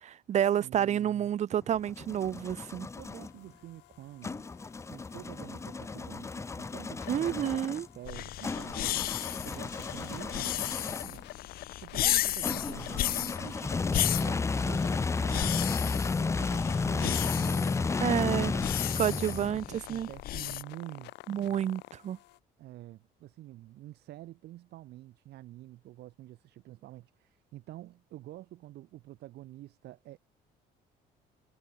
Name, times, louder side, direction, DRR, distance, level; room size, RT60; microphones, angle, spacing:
voice 1, 0.0-2.9 7.1-7.9 18.0-18.5 19.0-20.1 21.3-22.2, right 10 dB, 45° right, 0.5 m, -29 dB
voice 2, 0.6-1.3 3.0-4.5 4.9-7.6 7.9-21.6 22.6-30.2, right 15 dB, 75° right, 6.0 m, -48 dB
sound 1, 1.5-3.3 4.2-11.2 12.4-19.7, left 4 dB, 15° left, 0.6 m, -33 dB
sound 2, 3.2-22.4, left 20 dB, 90° left, 7.1 m, -48 dB
sound 3, 8.0-20.6, left 14 dB, 60° left, 0.7 m, -34 dB
cardioid pair, 110°, 17 cm